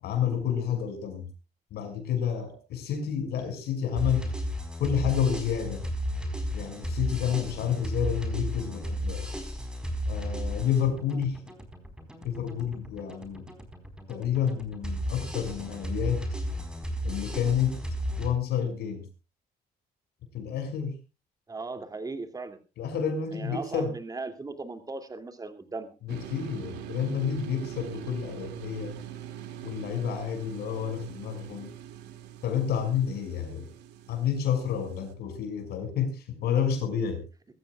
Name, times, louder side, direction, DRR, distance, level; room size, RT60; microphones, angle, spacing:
voice 1, 0.0-1.3 1.7-4.3 4.8-5.8 6.5-9.3 10.1-11.4 12.2-13.5 14.1-16.3 17.0-17.8 18.2-19.1 20.3-21.0 22.8-24.0 26.0-29.0 29.6-31.7 32.4-33.7 34.1-37.2, left 8 dB, 70° left, 5.9 m, -29 dB
sound 1, 4.0-18.3, equal, 5° right, 4.3 m, -34 dB
voice 2, 21.5-22.6 23.3-25.9, right 3 dB, 20° right, 2.6 m, -37 dB
sound 2, 26.1-35.1, right 10 dB, 90° right, 2.4 m, -43 dB
23.0 x 14.5 x 2.4 m
cardioid pair, 110°, 17 cm